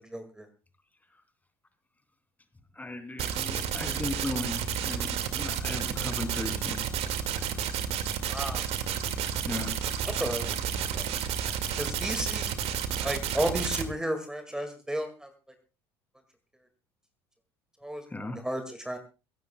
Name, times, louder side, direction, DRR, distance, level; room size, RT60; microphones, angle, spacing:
voice 1, 0.1-0.5 8.2-8.6 10.1-10.5 10.9-11.1 11.8-12.6 13.0-15.3 17.8-18.0 18.4-19.0, equal, 5° right, 7 dB, 2.1 m, -33 dB
voice 2, 2.7-6.8 7.4-7.6 9.4-9.7 18.1-18.4, left 2 dB, 10° left, 8 dB, 2.9 m, -36 dB
sound 1, 3.2-13.8, right 8 dB, 45° right, 2.1 m, -31 dB
22.5 x 16.5 x 2.3 m, 0.32 s
figure-of-eight pair, 65°, 14 cm